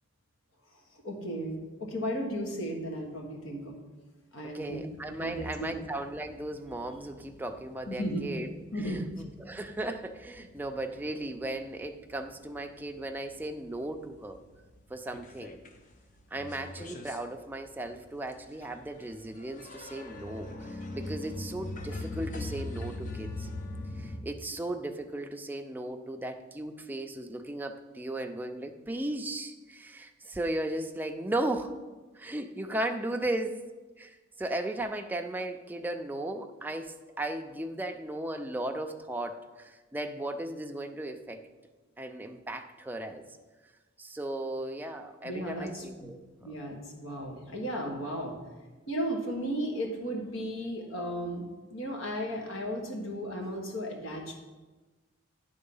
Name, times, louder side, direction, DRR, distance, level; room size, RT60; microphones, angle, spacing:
voice 1, 1.0-3.7 4.3-4.8 5.2-5.8 7.9-8.2 8.7-9.0 45.2-46.1 46.4-48.4 48.9-54.3, equal, 85° left, 1 dB, 1.5 m, -35 dB
voice 2, 4.5-8.5 8.8-14.4 14.9-15.6 16.3-23.5 24.0-31.7 32.2-33.6 34.0-41.4 42.0-43.2 44.0-46.5, right 1 dB, 10° right, 5 dB, 0.4 m, -36 dB
sound 1, 4.7-11.4 11.7-12.8 13.2-13.3 13.7-13.8 14.0-15.8 16.2-24.2, left 2 dB, 40° left, 0.6 m, -42 dB
9.7 x 3.6 x 5.4 m, 1.2 s
head